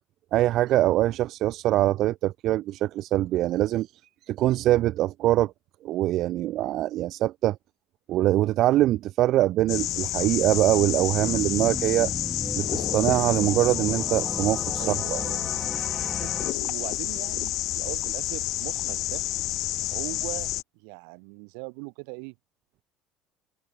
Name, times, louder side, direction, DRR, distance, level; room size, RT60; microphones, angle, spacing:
voice 1, 0.3-4.0 4.3-5.5 5.8-7.6 8.1-12.1 12.6-15.2, right 14 dB, 60° right, 0.4 m, -23 dB
sound 1, 9.6-16.5, right 1 dB, 5° right, 1.3 m, -36 dB
sound 2, 9.7-20.6, left 16 dB, 65° left, 0.7 m, -29 dB
voice 2, 14.8-15.4 16.2-19.2 19.9-20.5 20.7-22.4, right 40 dB or more, 80° right, 2.0 m, -39 dB
supercardioid pair, 85°, 0 cm